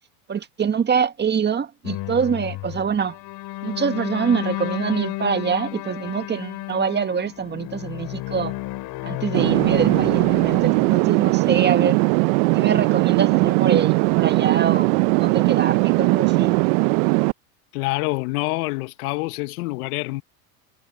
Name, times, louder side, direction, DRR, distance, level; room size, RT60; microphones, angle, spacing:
voice 1, 0.3-3.2 3.6-8.5 9.0-12.0 12.5-16.6, right 6 dB, 20° right, 1.6 m, -25 dB
sound 1, 1.8-11.1, left 18 dB, 50° left, 3.5 m, -32 dB
sound 2, 9.3-17.3, right 29 dB, 55° right, 0.6 m, -19 dB
voice 2, 17.7-20.2, left 22 dB, 65° left, 1.4 m, -26 dB
hypercardioid pair, 105°, 47 cm